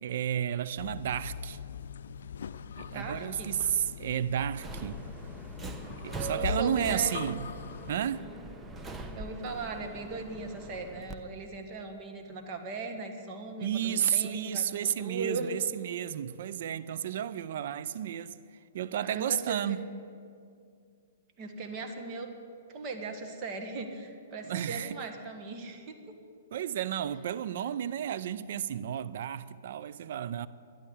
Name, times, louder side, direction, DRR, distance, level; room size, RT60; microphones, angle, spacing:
voice 1, 0.0-1.6 2.8-5.0 5.9-7.5 7.9-8.3 13.6-18.4 18.7-19.9 24.4-25.0 26.5-30.5, right 10 dB, 60° right, 0.6 m, -32 dB
sound 1, 0.8-8.0, left 7 dB, 70° left, 0.5 m, -41 dB
voice 2, 2.9-3.5 6.3-7.1 9.1-15.5 19.0-19.8 21.4-22.3 22.7-26.1, right 3 dB, 35° right, 1.8 m, -38 dB
Subway metro underground, 4.5-11.2, right 2 dB, 15° right, 1.0 m, -42 dB
12.0 x 10.5 x 8.4 m
hypercardioid pair, 125°, 0 cm